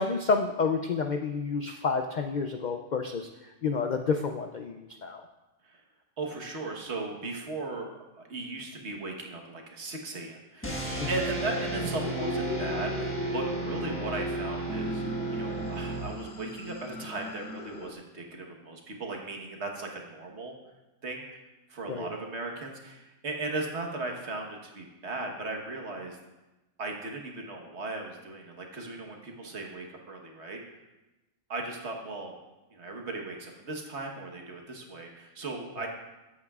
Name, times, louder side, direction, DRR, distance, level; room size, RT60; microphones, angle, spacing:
voice 1, 0.0-5.2 11.0-11.1 21.9-22.1, left 4 dB, 70° left, 5 dB, 0.4 m, -29 dB
voice 2, 6.2-15.0 15.3-20.5 21.0-21.4 21.7-26.2 26.8-30.6 31.5-32.4 32.7-35.9, right 2 dB, 55° right, 1 dB, 1.5 m, -37 dB
sound 1, 10.6-16.5, right 2 dB, 10° left, 1.2 m, -33 dB
sound 2, 12.0-17.9, left 6 dB, 50° left, 0.8 m, -40 dB
sound 3, 14.7-17.9, equal, 5° right, 0.6 m, -41 dB
14.0 x 8.5 x 2.4 m, 1.1 s
omnidirectional pair, 1.4 m